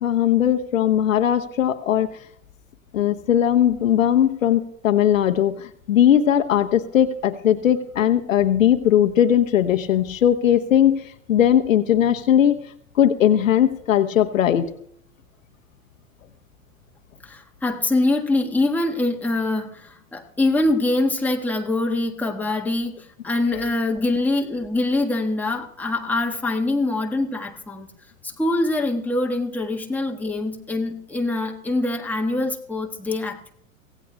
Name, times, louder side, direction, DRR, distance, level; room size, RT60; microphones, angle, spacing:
voice 1, 0.0-2.1 2.9-12.6 12.9-14.7, left 10 dB, 65° left, 7 dB, 1.0 m, -19 dB
voice 2, 17.2-27.9 28.2-33.5, left 2 dB, 5° left, 1 dB, 1.4 m, -24 dB
24.5 x 17.0 x 2.3 m, 0.68 s
figure-of-eight pair, 90°, 42 cm